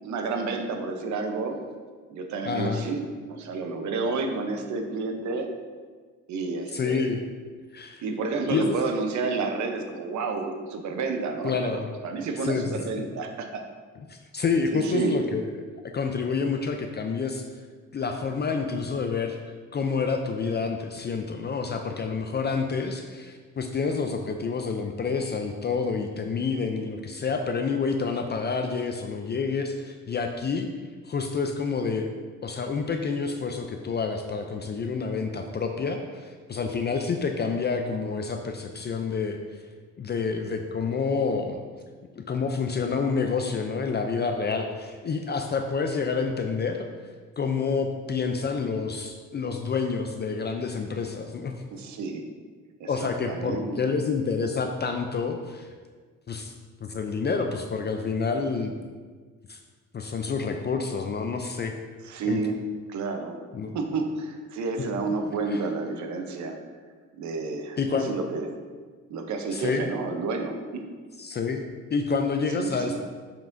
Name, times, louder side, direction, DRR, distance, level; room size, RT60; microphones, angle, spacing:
voice 1, 0.0-1.6 2.1-5.5 6.3-7.1 8.0-13.6 14.7-15.2 51.7-52.2 52.8-53.8 62.0-62.6 62.9-63.4 63.7-66.6 67.2-67.8 68.0-68.6 69.1-70.9 72.5-73.0, right 3 dB, 70° right, 5 dB, 0.8 m, -30 dB
voice 2, 2.4-2.9 6.7-7.2 7.7-8.0 8.5-8.8 11.4-11.9 12.4-12.8 14.1-15.5 15.9-17.4 17.9-19.4 19.7-30.7 31.0-32.1 32.4-39.4 40.0-41.6 42.2-46.9 47.4-51.5 52.9-55.7 56.3-56.5 56.8-58.7 59.5-59.6 59.9-61.7 62.2-62.4 63.5-63.8 65.5-65.6 67.8-68.1 69.5-69.9 71.2-73.0, left 5 dB, 35° left, 4 dB, 0.5 m, -28 dB
6.9 x 5.8 x 2.6 m, 1.5 s
cardioid pair, 90°, 30 cm